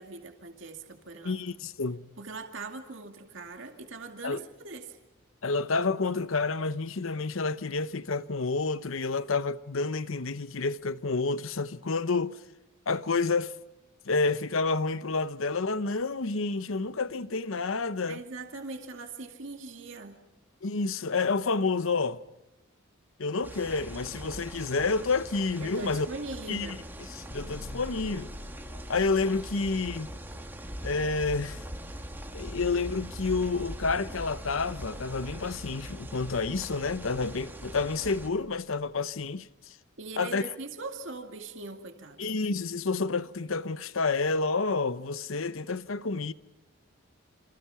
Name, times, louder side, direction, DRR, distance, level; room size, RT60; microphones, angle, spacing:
voice 1, 0.0-1.4 2.2-5.0 18.1-20.2 25.6-26.9 40.0-42.4, right 3 dB, 65° right, 2.3 m, -41 dB
voice 2, 1.2-2.1 4.2-4.4 5.4-12.4 12.9-13.5 14.1-18.2 20.6-22.2 23.2-26.1 26.5-26.8 27.2-28.3 28.9-30.1 30.8-31.6 32.3-39.5 40.2-40.4 42.2-46.3, left 4 dB, 75° left, 0.9 m, -29 dB
sound 1, 23.4-38.3, equal, 10° right, 1.9 m, -42 dB
sound 2, 27.3-39.4, left 1 dB, 40° left, 5.1 m, -50 dB
29.0 x 27.0 x 5.7 m
head